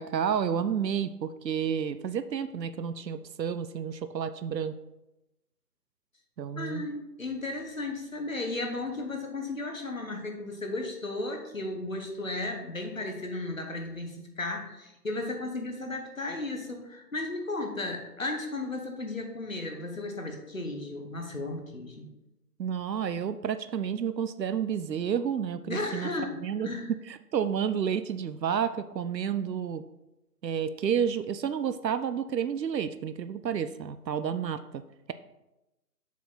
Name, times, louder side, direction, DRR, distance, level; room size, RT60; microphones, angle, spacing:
voice 1, 0.0-4.7 6.4-6.8 22.6-26.7 27.1-29.8 30.4-34.8, right 8 dB, 90° right, 12 dB, 0.6 m, -30 dB
voice 2, 6.6-22.1 25.7-26.9, left 2 dB, 55° left, 3 dB, 1.3 m, -35 dB
7.0 x 4.5 x 4.0 m, 0.96 s
figure-of-eight pair, 175°, 49 cm